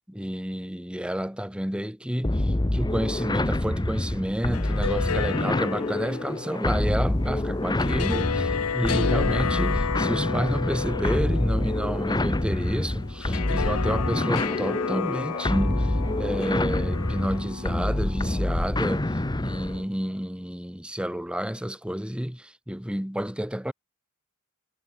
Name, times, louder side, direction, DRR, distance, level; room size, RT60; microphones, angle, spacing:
voice 1, 0.1-23.7, equal, 5° right, 1.4 m, -30 dB
sound 1, 2.2-19.8, left 1 dB, 20° left, 0.9 m, -27 dB
sound 2, 4.4-19.5, left 6 dB, 85° left, 0.7 m, -33 dB
head